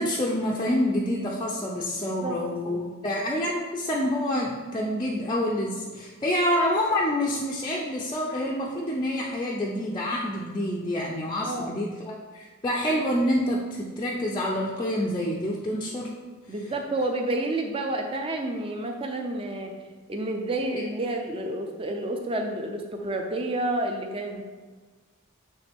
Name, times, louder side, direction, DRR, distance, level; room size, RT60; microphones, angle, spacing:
voice 1, 0.0-16.1 20.7-20.8, left 1 dB, 20° left, -3 dB, 0.5 m, -27 dB
voice 2, 2.0-2.4 11.4-11.8 16.5-19.7 20.1-24.4, right 1 dB, 25° right, 3 dB, 0.6 m, -30 dB
8.9 x 3.3 x 3.5 m, 1.4 s
head